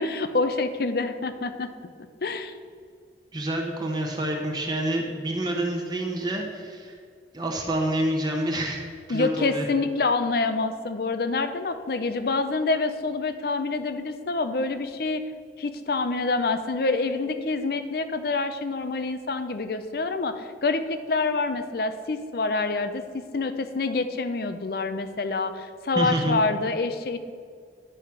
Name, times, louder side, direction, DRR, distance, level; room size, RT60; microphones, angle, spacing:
voice 1, 0.0-1.7 2.2-2.5 9.1-15.2 15.6-27.2, left 3 dB, 55° left, 10 dB, 0.6 m, -27 dB
voice 2, 3.3-6.9 7.3-8.8 9.1-9.7 25.9-26.4, right 1 dB, 25° right, 1 dB, 0.9 m, -27 dB
10.0 x 4.9 x 5.9 m, 2.1 s
head